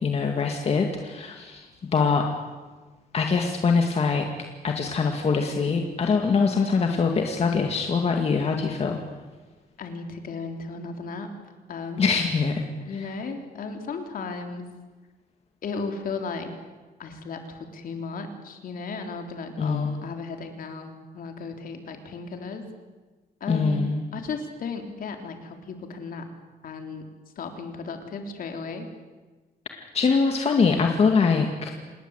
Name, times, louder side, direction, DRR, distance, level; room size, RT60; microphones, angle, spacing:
voice 1, 0.0-1.7 1.9-2.3 3.1-4.3 4.6-9.0 12.0-12.7 12.9-13.1 19.6-19.9 23.5-24.0 29.8-31.7, left 5 dB, 40° left, 3 dB, 2.1 m, -23 dB
voice 2, 9.8-11.3 11.7-12.1 12.8-14.7 15.6-16.5 17.0-17.4 17.7-22.6 23.4-26.2 26.6-27.0 27.4-28.9, left 4 dB, 60° left, 5 dB, 3.6 m, -35 dB
27.5 x 20.0 x 8.3 m, 1.3 s
wide cardioid pair, 165°, 16 cm